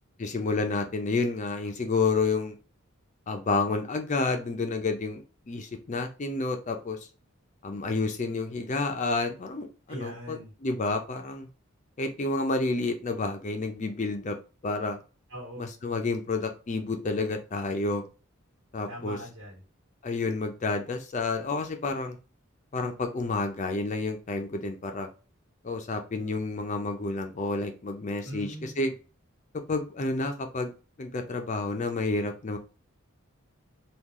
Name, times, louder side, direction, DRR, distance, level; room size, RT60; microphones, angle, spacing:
voice 1, 0.2-2.6 3.3-7.1 7.6-11.5 12.0-14.4 14.6-15.0 15.6-18.0 18.7-19.2 20.0-22.2 22.7-25.1 25.6-28.9 29.7-30.7 31.0-32.6, left 3 dB, 35° left, 5 dB, 0.5 m, -30 dB
voice 2, 9.9-10.5 15.3-15.7 18.9-19.6 28.2-28.9, equal, 80° right, -2 dB, 1.5 m, -41 dB
3.7 x 2.4 x 2.9 m, 0.34 s
head